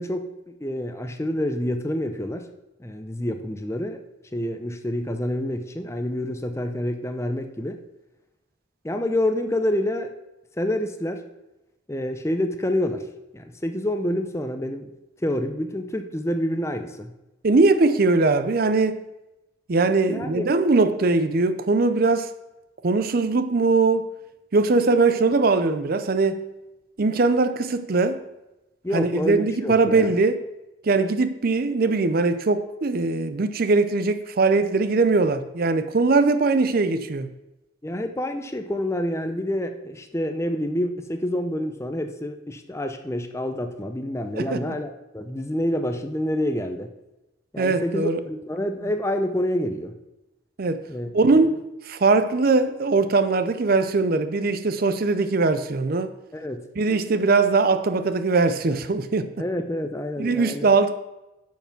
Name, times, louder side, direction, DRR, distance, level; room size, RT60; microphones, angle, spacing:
voice 1, 0.0-2.5 2.8-4.0 4.3-7.8 8.8-10.1 10.6-11.2 11.9-13.0 13.3-14.9 15.2-17.1 20.1-20.4 28.8-30.1 37.8-46.9 47.5-50.0 50.9-51.1 56.3-56.6 59.4-60.7, left 1 dB, 15° left, 0.6 m, -27 dB
voice 2, 17.4-19.0 19.7-22.3 22.8-24.0 24.5-26.4 27.0-28.2 28.9-30.4 30.8-37.3 44.4-44.6 47.6-48.2 50.6-50.9 51.1-56.1 56.8-59.3 60.2-60.9, right 3 dB, 45° right, 0.5 m, -21 dB
8.8 x 5.7 x 6.0 m
head